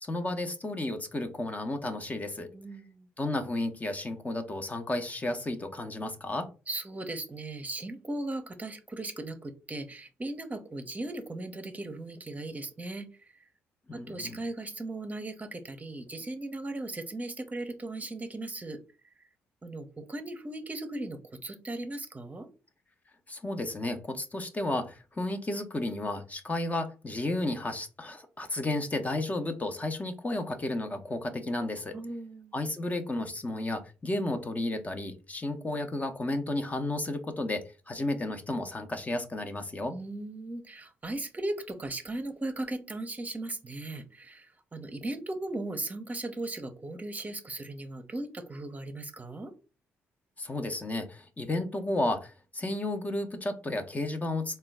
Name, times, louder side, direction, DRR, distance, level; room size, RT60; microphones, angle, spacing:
voice 1, 0.0-2.5 3.2-6.5 13.9-14.4 23.3-32.0 32.5-40.0 50.4-54.6, left 2 dB, 25° left, 6 dB, 0.7 m, -32 dB
voice 2, 2.5-3.1 6.7-13.3 13.9-18.8 19.6-22.5 31.9-32.5 39.9-49.5, right 2 dB, 25° right, 8 dB, 0.7 m, -37 dB
3.7 x 2.2 x 3.4 m, 0.32 s
hypercardioid pair, 45°, 6 cm